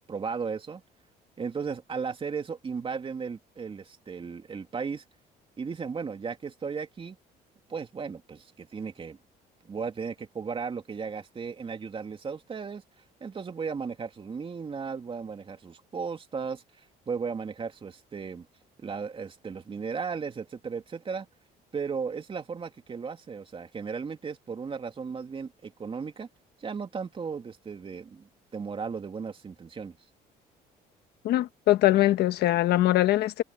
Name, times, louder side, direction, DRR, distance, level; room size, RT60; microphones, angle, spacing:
voice 1, 0.1-0.8 1.4-5.0 5.6-7.2 7.7-9.2 9.6-12.8 13.2-18.5 18.8-21.3 21.7-26.3 26.6-30.0, right 5 dB, 30° right, 2.9 m, -35 dB
voice 2, 31.2-33.4, left 15 dB, 75° left, 1.2 m, -22 dB
cardioid pair, 110°, 17 cm